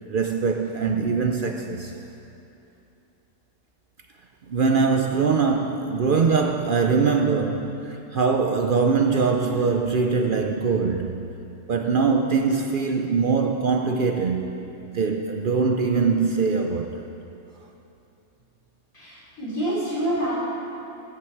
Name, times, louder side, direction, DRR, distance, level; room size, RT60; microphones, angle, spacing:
voice 1, 0.1-1.9 4.5-11.2 11.7-14.5 14.9-17.1, right 5 dB, 55° right, 3 dB, 0.6 m, -22 dB
voice 2, 18.9-20.3, right 1 dB, 85° left, -7 dB, 3.8 m, -27 dB
13.5 x 9.9 x 4.6 m, 2.8 s
omnidirectional pair, 1.4 m